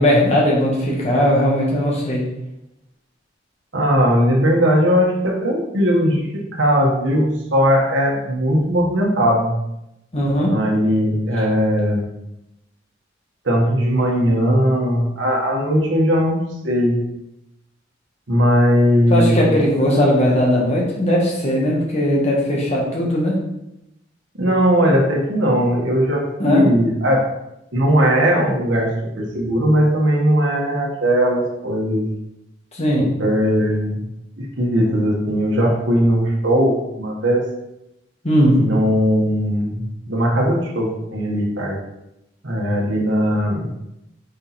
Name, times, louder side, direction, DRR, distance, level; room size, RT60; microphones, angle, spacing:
voice 1, 0.0-2.2 10.1-10.5 19.1-23.3 26.4-26.7 32.7-33.0 38.2-38.6, equal, 35° left, -3 dB, 1.6 m, -18 dB
voice 2, 3.7-9.6 10.5-12.1 13.4-17.0 18.3-19.4 24.4-27.2 27.7-32.1 33.0-34.0 34.4-37.4 38.5-41.8 42.4-43.7, equal, 75° right, -2 dB, 1.4 m, -18 dB
5.6 x 4.1 x 4.3 m, 0.87 s
head